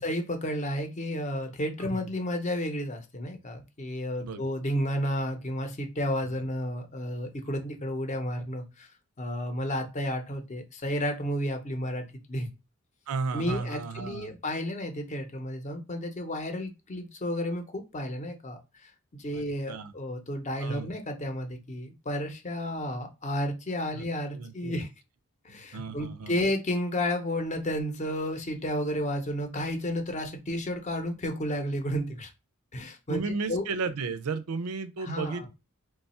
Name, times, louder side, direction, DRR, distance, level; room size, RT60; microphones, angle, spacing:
voice 1, 0.0-8.9 9.2-12.5 13.3-24.9 25.4-32.3 32.7-33.2 33.5-33.7 35.0-35.5, equal, 35° left, 0.7 m, -32 dB
voice 2, 13.1-14.3 19.3-19.9 20.6-20.9 23.9-24.8 25.5-26.4 33.1-35.5, right 4 dB, 90° right, 0.5 m, -34 dB
3.1 x 2.3 x 4.1 m
head